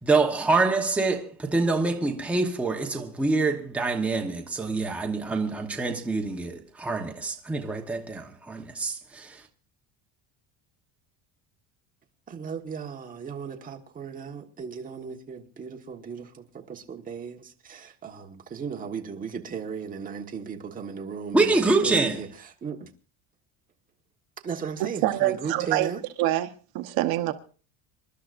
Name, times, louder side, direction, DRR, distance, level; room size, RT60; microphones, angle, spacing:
voice 1, 0.0-9.4 21.3-22.2, right 3 dB, 5° right, 1.0 m, -25 dB
voice 2, 12.3-22.9 24.4-26.0, right 6 dB, 20° right, 1.4 m, -36 dB
voice 3, 25.0-25.9 26.2-27.3, right 15 dB, 60° right, 1.1 m, -25 dB
27.0 x 12.0 x 2.5 m
cardioid pair, 165°, 40 cm